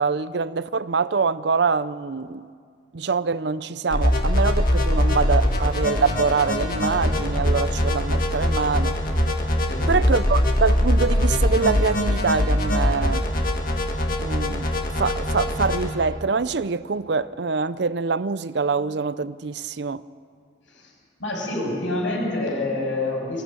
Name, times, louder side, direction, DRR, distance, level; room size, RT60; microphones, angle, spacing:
voice 1, 0.0-2.5 2.9-9.0 9.9-13.3 14.2-14.6 14.9-20.0, right 5 dB, 60° right, 0.5 m, -24 dB
sound 1, 3.9-15.9, left 1 dB, 45° left, 2.1 m, -22 dB
voice 2, 21.2-23.4, left 2 dB, 85° left, 6.9 m, -27 dB
22.5 x 15.0 x 9.0 m
head